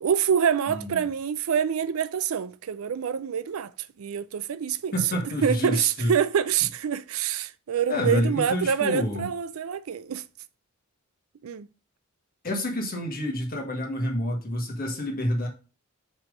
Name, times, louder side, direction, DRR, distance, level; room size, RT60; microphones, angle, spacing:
voice 1, 0.0-3.7 4.0-5.0 5.4-10.2 11.4-11.7, right 8 dB, 80° right, 0.4 m, -26 dB
voice 2, 0.7-1.0 4.9-6.1 7.9-9.3 12.4-15.5, left 1 dB, 45° left, 1.6 m, -28 dB
7.2 x 3.4 x 5.2 m
head